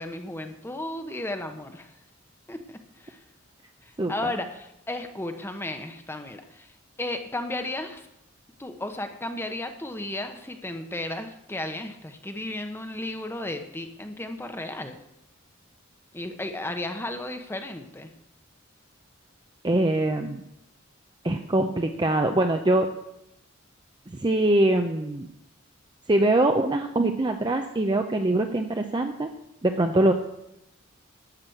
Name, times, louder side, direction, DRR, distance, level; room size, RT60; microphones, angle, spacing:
voice 1, 0.0-1.9 2.5-3.2 3.8-6.7 7.0-8.1 8.6-15.0 16.1-18.1, left 1 dB, 10° left, 6 dB, 0.9 m, -34 dB
voice 2, 4.0-4.3 19.6-20.4 21.2-22.9 24.1-25.3 26.1-29.3 29.6-30.1, right 1 dB, 25° right, 5 dB, 0.7 m, -23 dB
11.5 x 6.3 x 9.1 m, 0.83 s
head